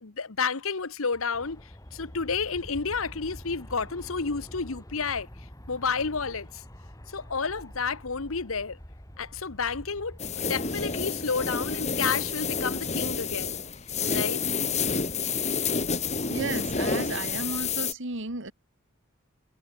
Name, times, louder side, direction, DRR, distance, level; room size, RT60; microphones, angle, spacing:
voice 1, 0.0-5.3 5.7-6.6 7.1-8.8 9.2-13.6 14.1-14.4, left 5 dB, 75° left, 1.2 m, -31 dB
Aircraft, 1.3-13.5, equal, 15° left, 3.5 m, -46 dB
sound 1, 10.2-17.9, left 5 dB, 35° left, 2.4 m, -29 dB
voice 2, 16.3-18.5, right 3 dB, 60° right, 3.0 m, -33 dB
head